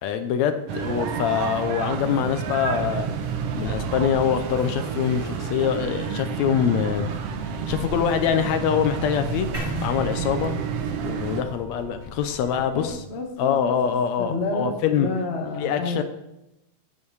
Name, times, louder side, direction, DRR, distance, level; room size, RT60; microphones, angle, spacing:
voice 1, 0.0-3.1 3.5-7.1 7.7-9.5 9.8-10.5 11.0-13.0 13.4-15.1 15.6-16.0, left 8 dB, 75° left, 8 dB, 1.9 m, -24 dB
sound 1, 0.7-11.4, right 7 dB, 65° right, 1.6 m, -30 dB
sound 2, 5.7-12.9, left 3 dB, 55° left, 1.3 m, -43 dB
sound 3, 9.5-13.5, right 1 dB, 30° right, 2.2 m, -37 dB
voice 2, 12.6-16.0, left 3 dB, 40° left, 2 dB, 0.9 m, -30 dB
9.7 x 8.7 x 4.7 m, 0.89 s
omnidirectional pair, 3.4 m